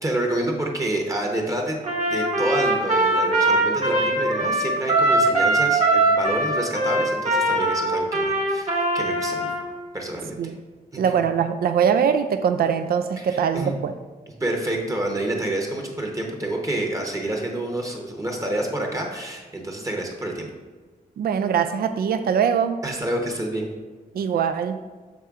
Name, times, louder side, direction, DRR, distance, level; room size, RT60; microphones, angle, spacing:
voice 1, 0.0-1.8 2.1-9.5 9.9-10.5 11.1-11.2 13.2-13.7 14.4-20.5 22.8-23.7, right 1 dB, 20° right, 1 dB, 0.8 m, -28 dB
Trumpet, 1.8-9.6, right 2 dB, 45° right, 1.1 m, -21 dB
voice 2, 11.0-13.9 21.2-22.8 24.2-24.8, right 7 dB, 85° right, 8 dB, 0.4 m, -22 dB
7.2 x 4.3 x 3.6 m, 1.4 s
wide cardioid pair, 145°, 15 cm